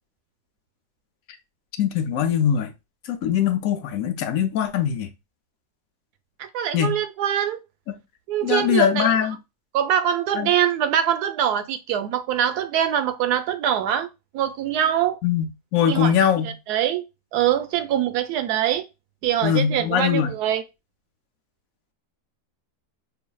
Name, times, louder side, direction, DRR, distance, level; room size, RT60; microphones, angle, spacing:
voice 1, 1.8-2.7 3.1-5.1 6.7-7.0 8.4-9.4 10.4-10.5 15.2-15.5 15.7-16.5 19.4-20.3, left 9 dB, 70° left, 1.0 m, -21 dB
voice 2, 6.4-7.6 8.3-9.1 9.7-14.1 14.3-15.2 15.9-16.1 16.7-17.0 17.3-18.8 19.2-20.6, right 10 dB, 80° right, 1.2 m, -23 dB
4.6 x 2.6 x 2.2 m
omnidirectional pair, 1.7 m